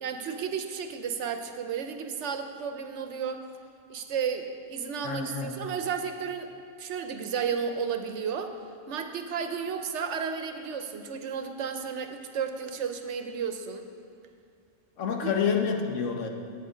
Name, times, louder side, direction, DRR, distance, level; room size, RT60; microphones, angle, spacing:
voice 1, 0.0-3.4 3.9-8.6 8.9-13.9 15.2-15.3, right 6 dB, 70° right, 7 dB, 1.0 m, -33 dB
voice 2, 5.0-5.5 15.0-16.3, left 6 dB, 85° left, 3 dB, 1.3 m, -28 dB
9.6 x 7.5 x 5.0 m, 2.4 s
omnidirectional pair, 1.3 m